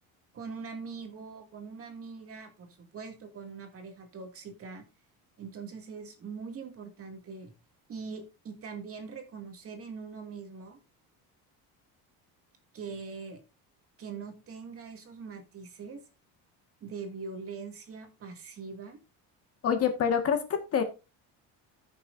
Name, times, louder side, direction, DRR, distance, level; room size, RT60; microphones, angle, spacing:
voice 1, 0.3-4.9 5.4-7.5 7.9-10.8 12.7-13.4 14.0-16.0 16.8-19.0, right 5 dB, 40° right, 2.3 m, -42 dB
voice 2, 19.6-20.8, left 7 dB, 40° left, 1.7 m, -26 dB
15.0 x 6.6 x 2.6 m
cardioid pair, 155°, 37 cm